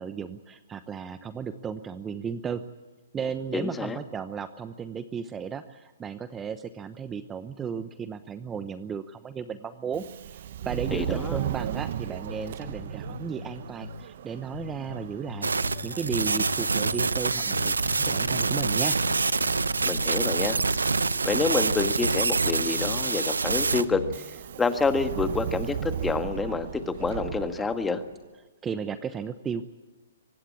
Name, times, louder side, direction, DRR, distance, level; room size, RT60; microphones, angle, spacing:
voice 1, 0.0-2.6 3.1-10.0 10.6-19.0 28.6-29.6, right 6 dB, 15° right, 12 dB, 0.9 m, -34 dB
voice 2, 3.5-4.0 10.9-11.4 19.8-20.6 21.2-24.1 24.6-28.0, left 4 dB, 10° left, 9 dB, 1.6 m, -28 dB
Subway metro underground, 9.9-28.2, right 10 dB, 55° right, 0.9 m, -38 dB
sound 1, 12.3-14.1 14.5-17.1 17.5-20.1 20.5-23.1 23.5-24.2, left 4 dB, 80° left, 1.3 m, -40 dB
sound 2, 15.4-23.8, right 4 dB, 85° right, 0.9 m, -26 dB
24.0 x 19.0 x 8.6 m, 1.2 s
hypercardioid pair, 130°, 0 cm